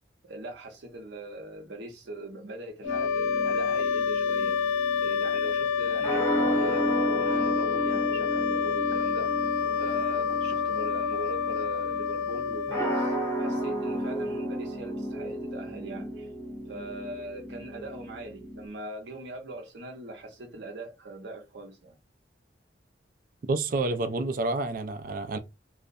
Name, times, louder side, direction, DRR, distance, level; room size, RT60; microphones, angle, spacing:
voice 1, 0.2-4.6 5.0-9.4 9.8-16.3 16.7-22.0, right 2 dB, 70° right, 0.7 m, -41 dB
sound 1, 2.8-13.8, left 6 dB, 85° left, 0.3 m, -28 dB
sound 2, 2.9-18.7, right 1 dB, 15° left, 0.7 m, -33 dB
voice 2, 23.5-25.4, right 2 dB, 45° right, 0.3 m, -29 dB
2.3 x 2.1 x 2.6 m
head